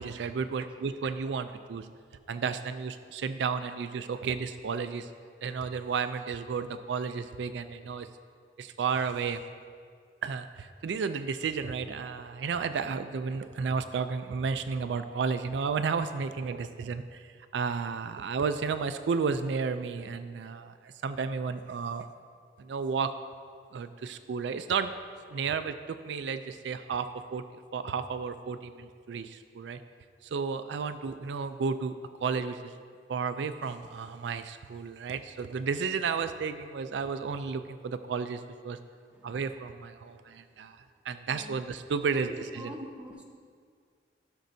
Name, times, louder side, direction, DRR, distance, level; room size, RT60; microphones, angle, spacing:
voice 1, 0.0-1.9 2.3-5.1 5.4-8.1 8.6-9.4 10.2-22.1 22.6-23.1 23.7-24.9 25.3-27.4 27.7-29.8 30.2-31.9 32.2-32.8 33.1-38.8 39.2-42.7, right 5 dB, 80° right, 10 dB, 0.4 m, -32 dB
voice 2, 42.1-43.2, equal, 5° right, -1 dB, 0.9 m, -45 dB
16.0 x 6.2 x 2.7 m, 2.1 s
head